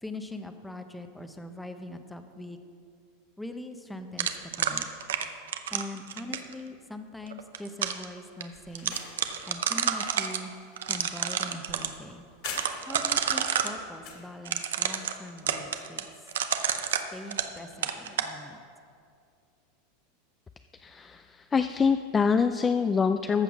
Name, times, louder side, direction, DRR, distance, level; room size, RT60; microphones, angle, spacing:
voice 1, 0.0-2.6 3.4-4.9 5.7-9.0 9.5-10.5 10.9-12.2 12.9-16.1 16.9-18.6, left 1 dB, 5° left, 7 dB, 0.8 m, -42 dB
sound 1, 4.2-6.5 7.3-8.0 8.4-8.5 8.7-10.4 10.8-11.9 12.5-13.7 14.4-17.6 17.8-18.3, right 8 dB, 90° right, 0.7 m, -29 dB
sound 2, 8.5-13.1 13.5-14.3, left 5 dB, 55° left, 2.7 m, -45 dB
voice 2, 20.8-23.4, left 5 dB, 20° left, 9 dB, 0.4 m, -25 dB
14.5 x 5.6 x 6.1 m, 2.3 s
hypercardioid pair, 115°, 0 cm